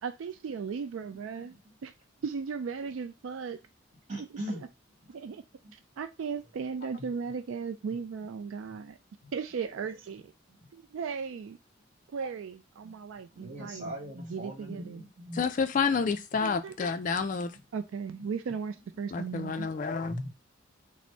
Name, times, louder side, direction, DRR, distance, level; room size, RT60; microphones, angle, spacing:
voice 1, 0.0-1.5 1.8-1.9 2.2-3.6 4.2-4.6 5.1-5.4 5.7-9.0 9.3-10.3 10.7-11.6 12.1-13.9 14.3-15.0 16.4-16.7 17.7-19.7, right 6 dB, 75° right, 0.3 m, -36 dB
voice 2, 1.1-1.7 4.1-4.7 5.0-5.1 5.6-5.7 7.0-7.4 8.7-8.8 9.2-9.3 10.5-10.7 12.8-13.0 13.3-15.4 16.3-16.5 18.1-18.2 18.5-18.6 19.5-20.3, equal, 35° right, 1.6 m, -42 dB
voice 3, 15.3-17.5 19.1-20.2, left 5 dB, 40° left, 0.3 m, -29 dB
4.2 x 2.0 x 4.5 m
head